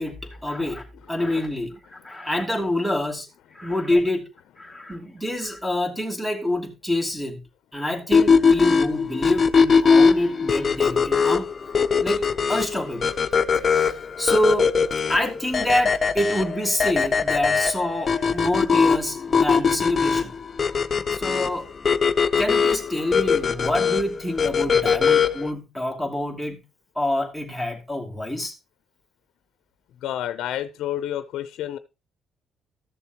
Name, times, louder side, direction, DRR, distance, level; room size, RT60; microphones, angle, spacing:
voice 1, 0.0-3.3 3.5-4.3 4.6-7.4 7.7-11.5 12.0-12.2 12.5-13.1 13.7-14.7 15.1-20.3 21.1-21.7 22.4-26.6 26.9-28.5, left 1 dB, 5° right, 4 dB, 2.7 m, -26 dB
sound 1, 8.1-25.5, left 5 dB, 40° left, 0.7 m, -21 dB
voice 2, 30.0-31.8, left 11 dB, 80° left, 13 dB, 0.6 m, -29 dB
13.5 x 6.8 x 2.9 m, 0.27 s
cardioid pair, 90°, 0 cm